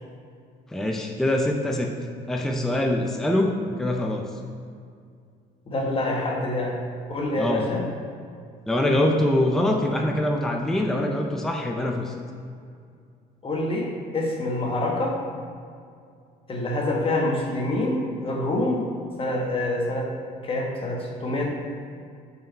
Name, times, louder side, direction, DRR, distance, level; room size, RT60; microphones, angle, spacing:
voice 1, 0.7-1.9 2.3-4.3 7.4-7.6 8.7-12.1, left 1 dB, 5° left, 1 dB, 0.5 m, -24 dB
voice 2, 5.7-6.8 7.1-7.9 13.4-15.2 16.5-18.9 19.2-20.1 20.4-21.5, left 1 dB, 35° left, -1 dB, 1.2 m, -26 dB
6.2 x 4.7 x 4.5 m, 2.3 s
cardioid pair, 110°, 17 cm